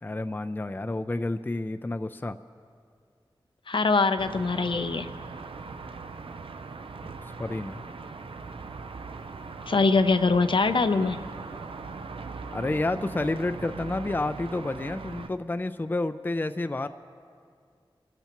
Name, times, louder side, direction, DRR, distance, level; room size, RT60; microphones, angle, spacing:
voice 1, 0.0-2.4 7.0-7.8 12.5-16.9, left 2 dB, 20° left, 10 dB, 0.4 m, -30 dB
voice 2, 3.7-5.1 9.7-11.2, left 4 dB, 65° left, 10 dB, 0.6 m, -23 dB
sound 1, 4.2-15.3, right 4 dB, 85° right, 0.5 m, -40 dB
27.0 x 14.0 x 3.0 m, 2.2 s
wide cardioid pair, 65°, 9 cm